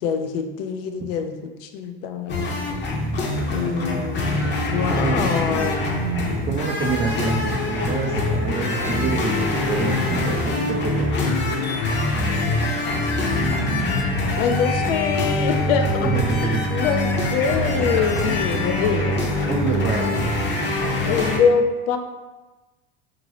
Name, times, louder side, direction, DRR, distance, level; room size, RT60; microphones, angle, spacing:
voice 1, 0.0-2.7 3.5-4.2 4.7-5.9 14.4-16.1 16.4-19.2 21.1-22.0, left 6 dB, 75° left, 6 dB, 0.5 m, -24 dB
sound 1, 2.3-21.4, left 2 dB, 35° left, 0.7 m, -24 dB
voice 2, 4.9-5.5 6.4-11.3 16.0-16.7 17.0-17.3 19.5-20.4, right 5 dB, 25° right, -2 dB, 0.4 m, -27 dB
2.9 x 2.6 x 2.8 m, 1.2 s
hypercardioid pair, 85°, 29 cm